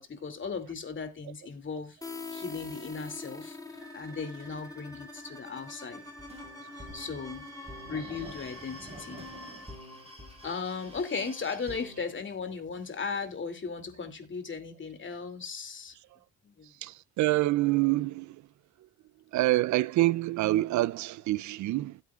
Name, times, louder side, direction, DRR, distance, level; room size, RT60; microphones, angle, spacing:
voice 1, 0.0-2.0 2.3-6.0 6.9-7.5 7.9-9.2 10.4-15.9 16.4-16.8, left 5 dB, 40° left, 2.7 m, -37 dB
sound 1, 2.0-11.6, left 3 dB, 10° left, 3.0 m, -46 dB
sound 2, 3.8-9.7, right 2 dB, 45° right, 1.5 m, -53 dB
sound 3, 6.0-12.0, equal, 20° right, 4.4 m, -47 dB
voice 2, 16.8-18.4 19.3-22.0, right 17 dB, 75° right, 0.4 m, -26 dB
16.5 x 8.5 x 2.4 m
cardioid pair, 90°, 30 cm